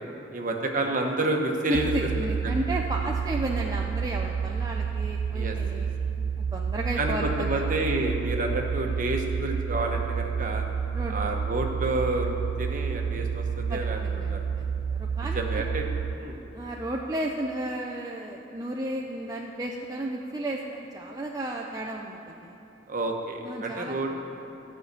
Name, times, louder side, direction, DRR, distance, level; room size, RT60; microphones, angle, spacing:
voice 1, 0.3-1.9 2.4-2.5 5.3-5.5 7.0-10.6 11.1-14.0 14.3-14.4 15.3-15.8 16.1-16.4 22.9-24.1, right 2 dB, 40° right, 2 dB, 1.1 m, -29 dB
voice 2, 1.7-5.9 6.4-7.6 10.9-11.2 13.7-15.6 16.5-22.6 23.4-24.0, right 1 dB, 20° right, -1 dB, 0.5 m, -33 dB
sound 1, 1.7-16.1, right 6 dB, 90° right, 0.4 m, -30 dB
14.0 x 5.7 x 8.2 m, 2.9 s
head